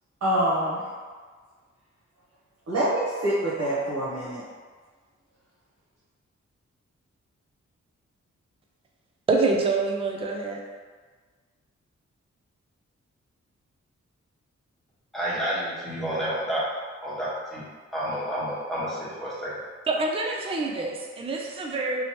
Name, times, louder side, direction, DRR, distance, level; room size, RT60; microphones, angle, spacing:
voice 1, 0.2-0.9 2.7-4.4, right 1 dB, 60° right, -10 dB, 0.8 m, -25 dB
voice 2, 9.3-10.6 19.9-22.0, right 3 dB, 20° right, 0 dB, 0.4 m, -26 dB
voice 3, 15.1-16.6 17.0-17.6 17.9-19.5, equal, ahead, -9 dB, 1.2 m, -30 dB
2.9 x 2.1 x 2.8 m, 1.5 s
cardioid pair, 50°, 30 cm